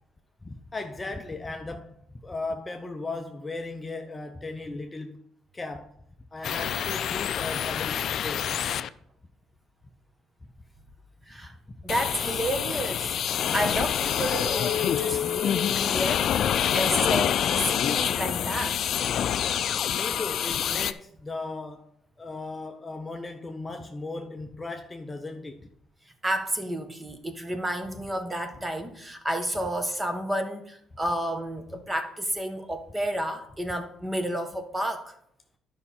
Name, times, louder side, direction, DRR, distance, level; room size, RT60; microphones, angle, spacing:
voice 1, 0.4-2.0 2.2-5.2 5.5-5.9 6.3-8.6 19.8-21.9 22.2-25.7, left 3 dB, 20° left, 0.7 m, -36 dB
sound 1, 6.4-8.9 11.9-20.9, left 9 dB, 60° left, 0.4 m, -26 dB
voice 2, 11.8-13.2 13.5-16.5 16.7-18.8 26.2-35.1, right 1 dB, 15° right, 1.3 m, -31 dB
11.0 x 5.4 x 4.3 m
cardioid pair, 100°, 0 cm